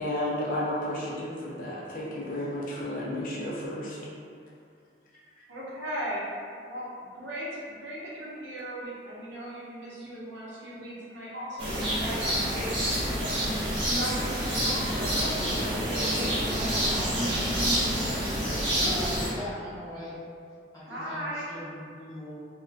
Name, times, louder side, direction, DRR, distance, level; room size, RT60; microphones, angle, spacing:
voice 1, 0.0-4.0, left 1 dB, 45° left, -6 dB, 0.4 m, -32 dB
voice 2, 5.5-6.2 6.7-6.9 7.1-13.3 13.8-16.5 20.9-21.4, equal, 75° right, -7 dB, 0.6 m, -37 dB
sound 1, 11.6-19.3, equal, 30° right, 0.6 m, -27 dB
voice 3, 18.8-20.1 20.7-22.4, left 1 dB, 20° left, -12 dB, 0.8 m, -40 dB
2.4 x 2.1 x 2.4 m, 2.3 s
head